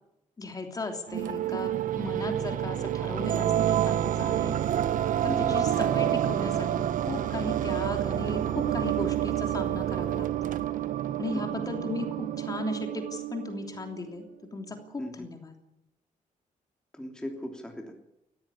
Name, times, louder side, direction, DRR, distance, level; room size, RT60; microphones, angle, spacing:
voice 1, 0.4-4.6 5.2-10.5 11.2-14.2 14.5-15.5, left 3 dB, 25° left, 4 dB, 3.1 m, -36 dB
sound 1, 1.1-14.0, right 11 dB, 75° right, 1.0 m, -28 dB
voice 2, 5.3-5.6 11.3-11.6 15.0-15.3 16.9-17.9, left 1 dB, 5° left, 2 dB, 3.0 m, -38 dB
19.5 x 14.5 x 10.0 m, 0.81 s
cardioid pair, 130°, 14 cm